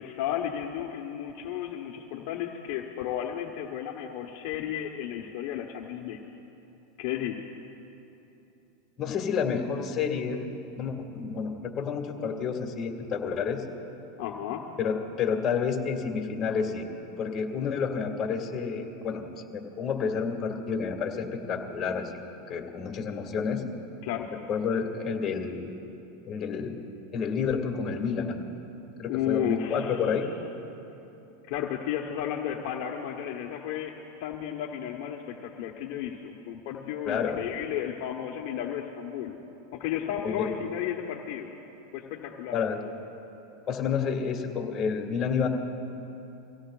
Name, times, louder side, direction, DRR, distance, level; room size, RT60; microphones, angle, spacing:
voice 1, 0.0-6.2 7.0-7.5 14.2-14.7 24.0-24.4 29.1-30.2 31.5-39.3 39.7-41.5 41.9-42.6, left 10 dB, 60° left, 1 dB, 1.0 m, -33 dB
voice 2, 9.0-10.4 10.8-13.6 14.8-16.9 17.2-22.2 22.5-23.7 24.5-25.7 26.3-26.8 27.1-28.5 29.0-30.3 37.1-37.4 40.2-40.5 42.5-42.8 43.7-45.5, left 6 dB, 30° left, 2 dB, 1.9 m, -30 dB
24.5 x 17.0 x 2.4 m, 3.0 s
supercardioid pair, 120°, 0 cm